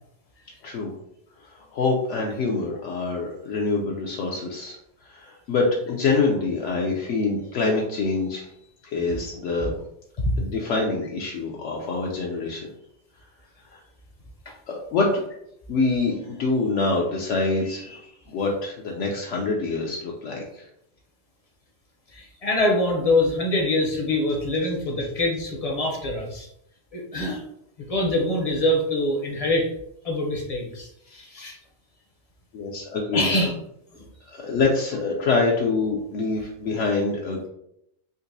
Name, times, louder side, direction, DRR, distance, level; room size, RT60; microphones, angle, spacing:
voice 1, 1.4-4.8 5.0-8.5 8.8-9.7 10.4-12.7 13.7-13.8 14.7-15.2 15.7-20.7 32.5-33.3 34.1-37.5, left 3 dB, 75° left, -1 dB, 0.9 m, -25 dB
voice 2, 22.1-26.5 26.9-27.4 27.9-29.7 30.0-31.6 33.1-33.5 33.9-34.0, left 1 dB, 40° left, 0 dB, 0.5 m, -24 dB
3.9 x 2.5 x 2.6 m, 0.76 s
omnidirectional pair, 1.3 m